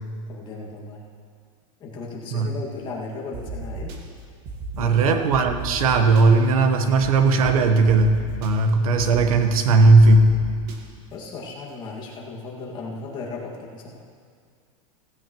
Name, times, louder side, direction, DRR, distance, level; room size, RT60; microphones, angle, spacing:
voice 1, 0.3-1.0 1.8-3.9 4.8-5.2 11.1-14.0, left 3 dB, 25° left, -3 dB, 2.0 m, -36 dB
sound 1, 3.3-4.0 4.5-4.8 5.3-6.2 7.0-7.1 7.4-7.5 7.8-8.5 9.0-9.4 9.8-10.8, right 2 dB, 45° right, 1.7 m, -34 dB
voice 2, 4.8-10.3, right 3 dB, 85° right, 7 dB, 1.2 m, -17 dB
16.0 x 16.0 x 3.1 m, 2.1 s
supercardioid pair, 165°, 18 cm